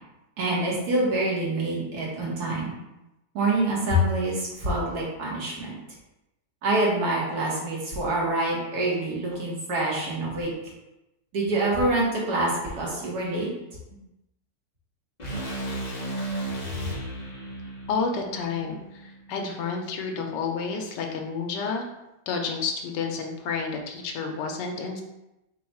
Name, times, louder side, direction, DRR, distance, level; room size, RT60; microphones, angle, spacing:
voice 1, 0.4-2.7 3.3-5.8 6.6-10.5 11.3-13.5, right 1 dB, 65° right, -4 dB, 1.7 m, -26 dB
sound 1, 15.2-19.4, right 1 dB, 35° left, 0.7 m, -34 dB
voice 2, 17.9-21.9 22.3-25.0, left 5 dB, 90° left, 2 dB, 1.3 m, -30 dB
4.2 x 2.3 x 4.4 m, 0.92 s
omnidirectional pair, 1.9 m